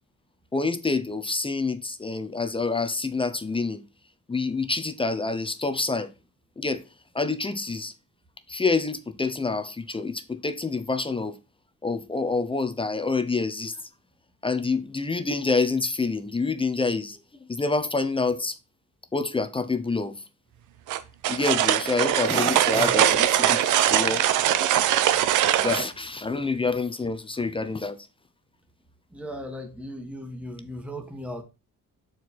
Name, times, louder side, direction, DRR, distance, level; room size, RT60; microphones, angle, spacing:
voice 1, 0.5-3.8 4.3-6.1 6.6-6.8 7.1-7.9 8.5-11.3 11.8-13.8 14.4-17.2 17.5-18.6 19.1-20.1 21.3-24.2 25.5-28.0, left 3 dB, 15° left, 0.7 m, -27 dB
sound 1, 20.9-25.8, right 11 dB, 85° right, 0.7 m, -22 dB
voice 2, 25.1-25.4 29.1-31.4, equal, 5° right, 1.4 m, -37 dB
6.5 x 4.8 x 4.1 m
cardioid pair, 90°, 30 cm